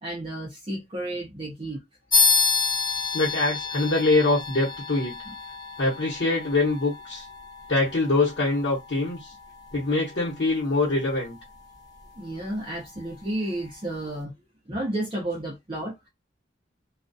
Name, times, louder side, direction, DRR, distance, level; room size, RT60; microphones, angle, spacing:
voice 1, 0.0-1.8 12.2-14.3 14.7-16.1, right 1 dB, 25° right, 0.6 m, -32 dB
sound 1, 2.1-12.1, left 4 dB, 20° left, 0.8 m, -29 dB
voice 2, 3.1-5.1 5.8-7.2 7.7-9.3 9.7-11.4, left 2 dB, 65° left, 0.9 m, -24 dB
2.3 x 2.3 x 2.6 m
head